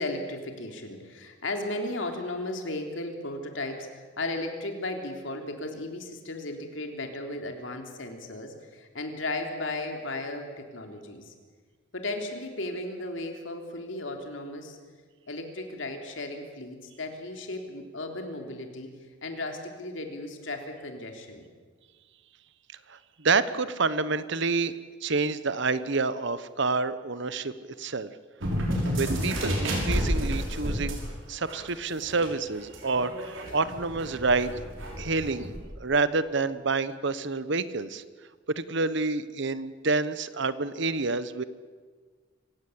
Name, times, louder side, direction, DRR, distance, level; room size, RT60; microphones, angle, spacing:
voice 1, 0.0-11.3 11.9-14.8 15.3-18.9 19.2-21.5, left 2 dB, 70° left, 4 dB, 3.4 m, -35 dB
voice 2, 22.9-24.7 25.0-27.5 27.8-28.1 28.9-31.0 31.3-34.5 35.0-35.5 35.8-38.0 38.6-41.4, right 3 dB, 65° right, 14 dB, 1.1 m, -28 dB
sound 1, 28.4-31.1 31.4-31.6 32.0-35.6, equal, 80° right, 6.0 m, -30 dB
26.5 x 16.5 x 8.6 m, 1.5 s
head